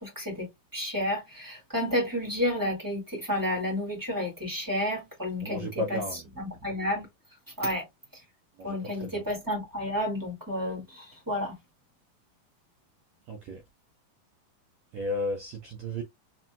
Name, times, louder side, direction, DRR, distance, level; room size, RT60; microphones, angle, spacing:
voice 1, 0.0-6.0 6.4-7.0 7.6-7.8 8.6-11.6, left 1 dB, 10° right, 0.9 m, -31 dB
voice 2, 5.4-6.3 8.6-9.2 13.3-13.6 14.9-16.0, left 1 dB, 80° right, 1.6 m, -34 dB
5.9 x 2.7 x 2.3 m
omnidirectional pair, 4.0 m